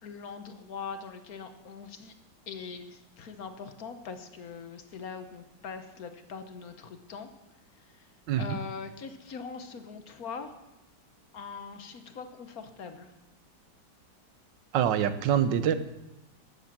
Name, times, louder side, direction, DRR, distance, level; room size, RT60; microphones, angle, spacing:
voice 1, 0.0-2.1 2.5-7.3 7.8-8.1 8.4-10.5 11.3-13.1, left 5 dB, 55° left, 8 dB, 1.4 m, -42 dB
voice 2, 14.7-15.7, right 9 dB, 85° right, 12 dB, 1.5 m, -25 dB
13.0 x 7.6 x 7.4 m, 0.96 s
omnidirectional pair, 1.9 m